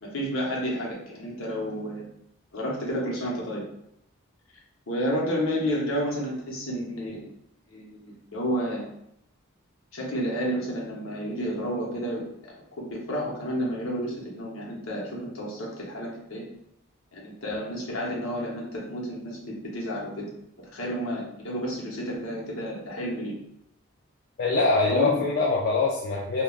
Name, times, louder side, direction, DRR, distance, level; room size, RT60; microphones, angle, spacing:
voice 1, 0.0-2.1 2.5-3.6 4.9-7.2 7.7-8.8 9.9-12.2 12.8-16.4 17.1-19.4 19.7-20.3 20.7-23.3 24.9-25.3, equal, 75° left, -3 dB, 0.9 m, -30 dB
voice 2, 24.4-26.4, left 3 dB, 50° left, -4 dB, 0.3 m, -23 dB
3.3 x 2.2 x 2.3 m, 0.75 s
head